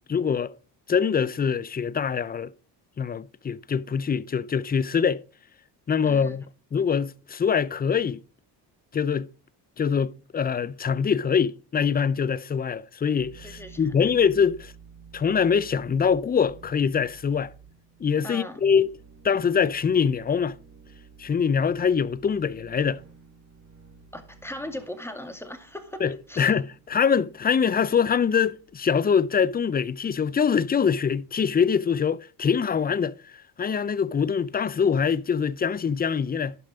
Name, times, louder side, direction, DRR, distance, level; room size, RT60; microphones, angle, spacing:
voice 1, 0.1-0.5 0.9-2.5 3.0-5.2 5.9-6.4 6.7-8.2 8.9-9.3 9.8-14.7 15.1-17.5 18.0-18.9 19.2-20.6 21.2-23.0 26.0-33.1 33.6-36.6, left 6 dB, 20° left, 0.5 m, -24 dB
voice 2, 6.0-6.4 13.4-13.9 18.2-18.6 24.1-26.0 26.3-26.5, left 1 dB, 5° left, 2.2 m, -38 dB
sound 1, 13.2-30.6, right 6 dB, 35° right, 2.9 m, -52 dB
11.5 x 5.3 x 5.0 m
supercardioid pair, 75°, 47 cm